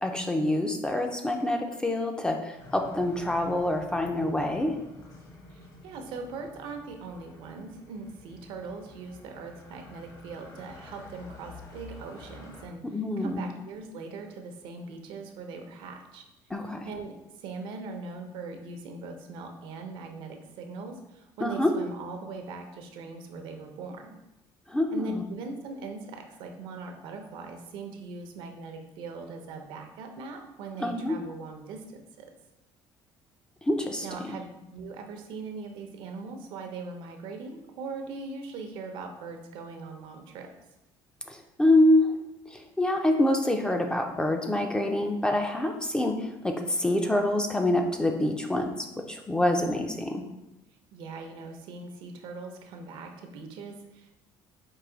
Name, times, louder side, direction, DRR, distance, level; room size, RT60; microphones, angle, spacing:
voice 1, 0.0-4.8 12.9-13.4 16.5-16.9 21.4-21.7 24.7-25.2 30.8-31.1 33.6-34.1 41.3-42.2 42.5-50.2, left 1 dB, 10° left, 3 dB, 0.4 m, -26 dB
sound 1, 2.6-12.7, left 2 dB, 40° left, 0.9 m, -49 dB
voice 2, 5.5-12.8 13.2-16.2 16.9-24.1 24.9-32.3 34.0-40.5 50.9-54.1, right 3 dB, 75° right, 4 dB, 0.7 m, -40 dB
4.7 x 2.6 x 3.8 m, 0.93 s
cardioid pair, 130°, 9 cm